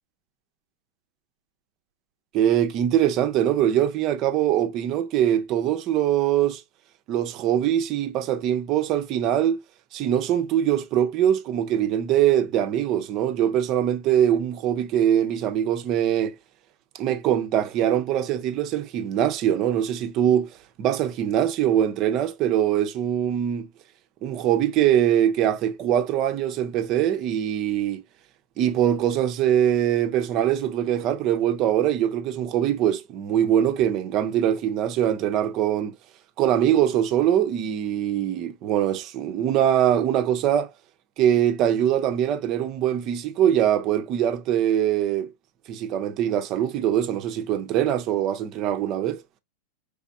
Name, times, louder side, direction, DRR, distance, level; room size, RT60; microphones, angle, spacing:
voice 1, 2.3-6.6 7.1-9.6 9.9-16.3 16.9-20.5 20.8-23.7 24.2-28.0 28.6-36.0 36.4-40.7 41.2-45.3 45.7-49.2, right 10 dB, 35° right, 0.6 m, -22 dB
5.1 x 3.4 x 2.3 m
figure-of-eight pair, 90°, 0 cm